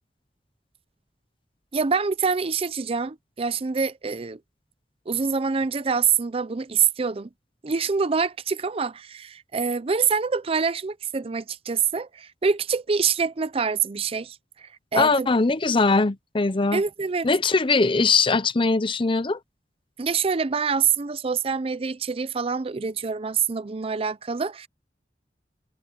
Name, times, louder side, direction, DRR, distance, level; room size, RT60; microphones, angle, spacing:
voice 1, 1.7-4.4 5.1-7.3 7.6-15.3 16.7-17.3 20.0-24.7, right 5 dB, 35° right, 0.5 m, -25 dB
voice 2, 14.9-16.8 17.2-19.4, left 3 dB, 30° left, 0.7 m, -21 dB
head